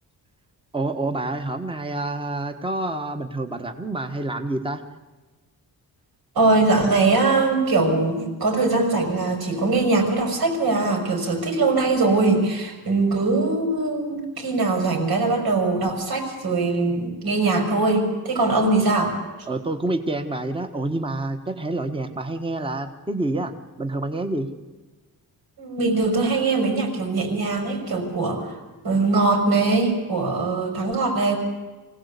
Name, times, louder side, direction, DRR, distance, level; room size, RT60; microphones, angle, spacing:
voice 1, 0.7-4.8 19.5-24.5, right 2 dB, 15° right, 7 dB, 1.4 m, -28 dB
voice 2, 6.4-19.1 25.6-28.5 28.8-31.4, right 3 dB, 75° right, 2 dB, 5.8 m, -21 dB
25.0 x 17.5 x 8.3 m, 1.3 s
wide cardioid pair, 170°, 37 cm